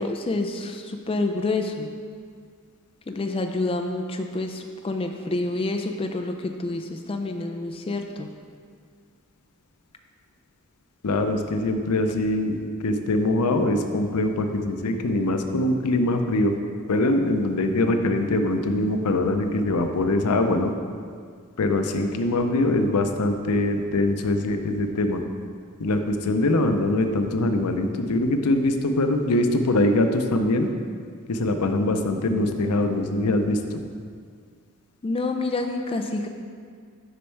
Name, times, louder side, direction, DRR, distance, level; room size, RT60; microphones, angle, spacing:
voice 1, 0.0-1.9 3.1-8.3 35.0-36.3, left 2 dB, 25° left, 5 dB, 0.4 m, -28 dB
voice 2, 11.0-16.6 16.9-20.7 21.6-25.2 25.8-30.7 31.3-33.8, left 2 dB, 90° left, 6 dB, 0.6 m, -23 dB
6.8 x 5.3 x 4.5 m, 2.1 s
head